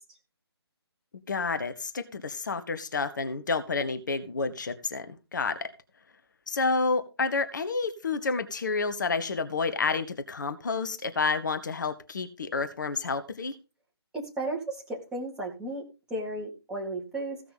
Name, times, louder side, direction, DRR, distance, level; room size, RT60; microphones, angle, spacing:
voice 1, 1.3-5.7 6.5-13.5, left 4 dB, 45° left, 9 dB, 1.4 m, -29 dB
voice 2, 14.1-17.4, right 2 dB, 5° right, -3 dB, 2.4 m, -34 dB
15.5 x 5.9 x 5.5 m, 0.30 s
figure-of-eight pair, 145°, 14 cm